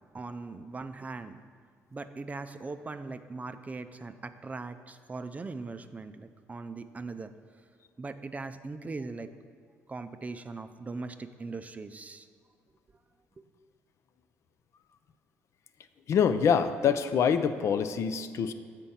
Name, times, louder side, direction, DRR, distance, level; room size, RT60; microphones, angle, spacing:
voice 1, 0.1-1.4 1.9-7.3 8.0-9.3 9.9-12.3, right 3 dB, 25° right, 9 dB, 0.4 m, -40 dB
voice 2, 16.1-18.5, left 7 dB, 60° left, 10 dB, 0.4 m, -25 dB
7.4 x 4.5 x 5.6 m, 2.1 s
supercardioid pair, 65°, 6 cm